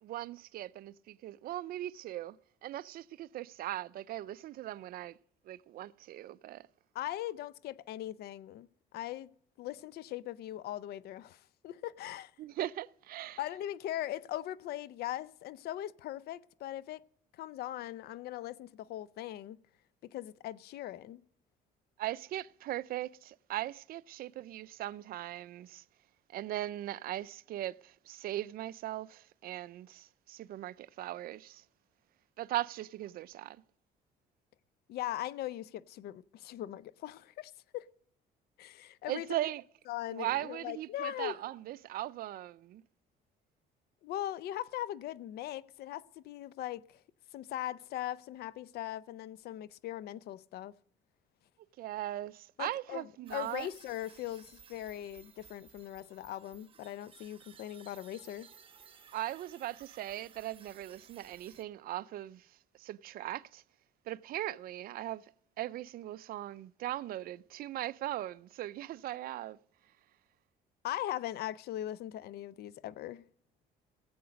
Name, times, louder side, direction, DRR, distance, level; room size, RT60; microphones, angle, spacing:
voice 1, 0.0-2.4 2.6-5.2 5.5-6.7 12.4-13.4 22.0-25.8 26.3-31.6 32.4-33.6 39.1-39.6 40.1-42.8 51.8-53.7 59.1-62.5 62.8-63.6 64.1-65.2 65.6-69.6, right 14 dB, 60° right, 0.4 m, -39 dB
voice 2, 6.9-8.7 8.9-9.3 9.6-12.3 13.4-17.0 17.4-19.6 20.0-21.2 34.9-37.9 38.6-39.3 39.9-41.4 44.0-47.0 47.3-50.7 52.6-58.5 70.8-73.2, left 13 dB, 70° left, 0.6 m, -40 dB
sound 1, 53.3-61.6, right 7 dB, 30° right, 1.1 m, -58 dB
18.5 x 7.9 x 5.1 m
cardioid pair, 110°, 17 cm